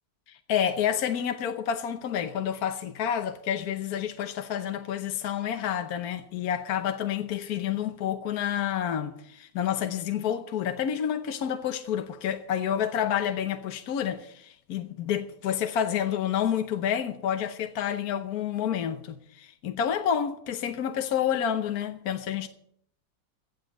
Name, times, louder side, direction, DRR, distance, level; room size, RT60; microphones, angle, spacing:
voice 1, 0.3-22.5, left 9 dB, 70° left, 1.4 m, -29 dB
16.0 x 7.3 x 7.8 m
omnidirectional pair, 1.7 m